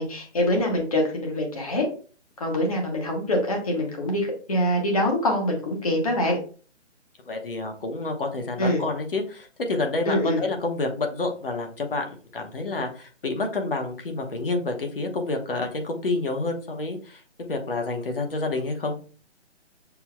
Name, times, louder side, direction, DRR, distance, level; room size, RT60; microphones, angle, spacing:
voice 1, 0.0-1.9 2.4-6.4 8.6-8.8 10.0-10.4, left 1 dB, 30° left, 2 dB, 1.3 m, -24 dB
voice 2, 7.3-19.0, left 3 dB, 50° left, 4 dB, 1.1 m, -29 dB
6.8 x 2.7 x 2.2 m, 0.39 s
hypercardioid pair, 165°, 35 cm